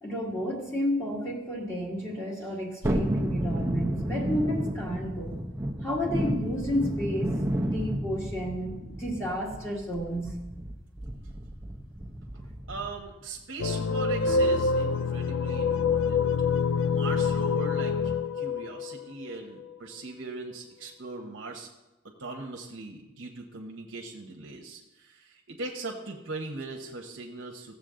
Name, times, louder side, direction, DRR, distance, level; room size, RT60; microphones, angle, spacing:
voice 1, 0.0-5.4 5.8-7.3 7.6-10.4, equal, 15° left, -4 dB, 1.9 m, -31 dB
Thunderstorm, 2.8-13.1 13.4-13.5, right 1 dB, 15° right, 0.7 m, -32 dB
voice 2, 12.7-16.3 16.9-18.0 18.3-21.7 22.2-27.8, right 3 dB, 70° right, 0 dB, 1.1 m, -40 dB
sound 1, 13.6-19.8, left 5 dB, 80° left, 0.5 m, -26 dB
15.5 x 7.5 x 3.8 m, 1.0 s
head